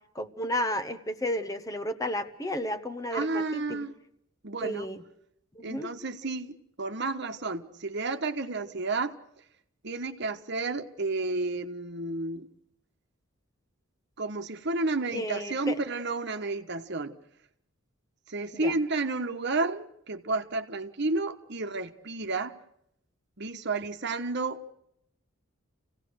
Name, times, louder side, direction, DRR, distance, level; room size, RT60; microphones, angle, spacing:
voice 1, 0.1-3.9 4.6-5.0 5.5-5.9 15.1-15.8 18.5-18.7, left 1 dB, 15° left, 10 dB, 1.1 m, -32 dB
voice 2, 3.1-3.9 4.4-4.9 5.6-9.2 9.8-12.5 14.2-17.2 18.3-22.6 23.4-24.7, right 3 dB, 55° right, 7 dB, 1.3 m, -31 dB
27.5 x 17.0 x 6.4 m, 0.75 s
head